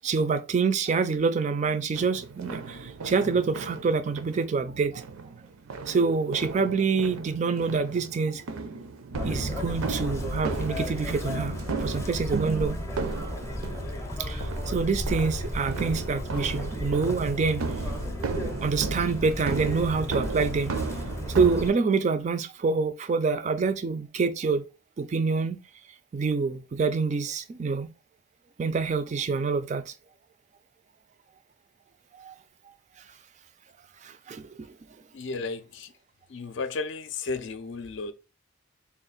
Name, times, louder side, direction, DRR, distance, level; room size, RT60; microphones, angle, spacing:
voice 1, 0.0-5.0 5.9-8.4 9.2-11.5 11.8-12.8 14.2-17.6 18.6-20.7 21.3-24.6 25.0-25.6 26.1-27.9 28.6-29.9 32.2-32.4 34.0-34.5, right 4 dB, 35° right, 0.3 m, -26 dB
sound 1, 1.9-21.7, right 4 dB, 85° right, 0.5 m, -36 dB
Chirp tweet, 9.1-21.7, left 1 dB, 15° left, 0.6 m, -34 dB
voice 2, 35.1-35.9 36.3-38.1, left 4 dB, 60° left, 0.4 m, -33 dB
3.5 x 2.4 x 3.9 m
head